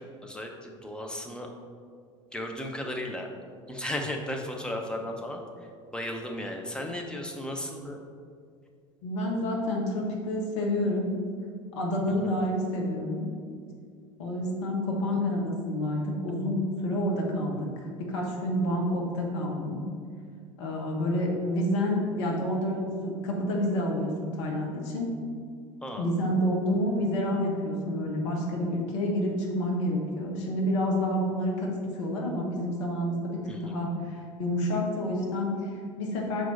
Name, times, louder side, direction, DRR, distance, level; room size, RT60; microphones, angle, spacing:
voice 1, 0.0-1.5 2.3-3.3 3.7-5.4 5.9-8.0 12.1-12.4 25.8-26.0 33.5-33.8, left 1 dB, 5° left, 2 dB, 0.8 m, -35 dB
voice 2, 9.0-11.1 11.7-13.3 14.2-17.7 18.0-19.9 20.6-25.1 26.0-36.5, left 1 dB, 65° left, 0 dB, 1.2 m, -29 dB
6.2 x 4.6 x 4.1 m, 2.1 s
figure-of-eight pair, 70°, 16 cm